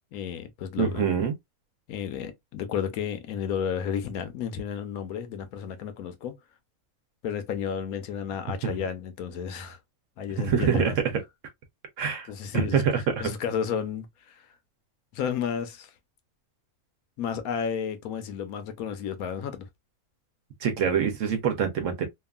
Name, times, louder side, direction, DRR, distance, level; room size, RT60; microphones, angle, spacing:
voice 1, 0.1-1.1 1.9-6.3 7.2-9.8 10.2-11.0 12.3-12.8 13.2-14.4 15.1-15.9 17.2-19.7, left 8 dB, 85° left, 1.1 m, -32 dB
voice 2, 0.8-1.3 8.6-8.8 10.4-11.1 12.0-13.3 20.6-22.1, right 7 dB, 65° right, 0.9 m, -25 dB
2.8 x 2.4 x 2.2 m
omnidirectional pair, 1.5 m